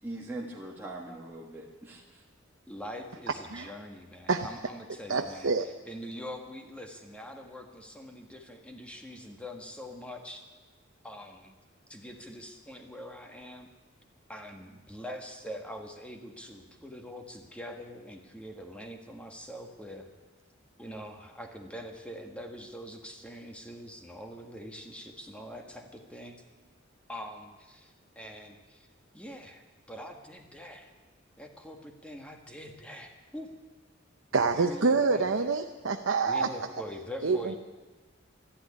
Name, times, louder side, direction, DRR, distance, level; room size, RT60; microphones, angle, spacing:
voice 1, 0.0-2.2, right 2 dB, 10° right, -4 dB, 1.6 m, -41 dB
voice 2, 2.7-10.4 11.0-11.5 11.9-13.7 14.3-20.1 20.8-26.4 27.1-28.9 29.1-30.9 31.4-33.5 34.3-35.3 36.3-37.6, equal, 5° left, 3 dB, 1.6 m, -44 dB
voice 3, 5.1-5.7 34.3-36.5 37.2-37.6, right 4 dB, 75° right, 5 dB, 0.7 m, -26 dB
12.5 x 11.5 x 9.7 m, 1.3 s
head